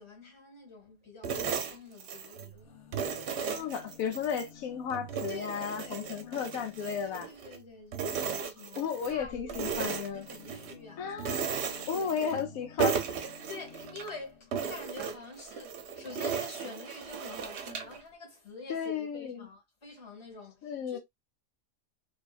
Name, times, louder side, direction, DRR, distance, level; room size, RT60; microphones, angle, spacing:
voice 1, 0.0-2.8 5.3-6.5 6.8-11.5 11.9-12.5 13.5-21.0, left 3 dB, 25° left, 1.0 m, -48 dB
sound 1, 1.2-2.5 2.9-4.5 4.9-7.6 7.9-9.2 9.5-10.8 11.2-12.5 12.8-14.1 14.5-18.0, right 6 dB, 65° right, 0.8 m, -35 dB
sound 2, 2.5-7.4 9.0-14.5 15.5-15.6 15.8-15.9, left 5 dB, 65° left, 1.0 m, -53 dB
voice 2, 3.4-7.3 8.4-8.5 8.8-10.3 11.0-11.4 11.7-13.0 18.7-19.5 20.6-21.0, left 7 dB, 85° left, 1.1 m, -34 dB
2.6 x 2.4 x 2.3 m
omnidirectional pair, 1.4 m